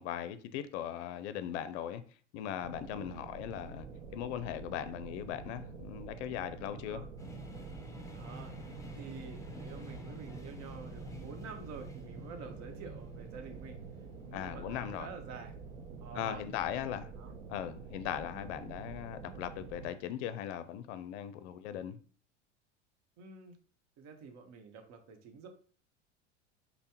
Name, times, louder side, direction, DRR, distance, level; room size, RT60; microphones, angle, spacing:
voice 1, 0.0-2.0 2.3-3.9 4.1-7.0 14.3-15.1 16.1-17.1 17.5-22.0, left 10 dB, 65° left, 0.5 m, -39 dB
sound 1, 2.6-19.9, right 5 dB, 75° right, 0.7 m, -47 dB
voice 2, 2.9-3.2 6.7-7.1 8.1-8.5 8.9-13.8 14.3-15.5 16.0-16.4 17.2-17.3 23.2-23.6 24.0-25.5, right 5 dB, 50° right, 0.9 m, -48 dB
sound 2, 7.2-19.0, equal, 10° left, 0.6 m, -51 dB
5.3 x 2.1 x 2.8 m
hypercardioid pair, 80°, 37 cm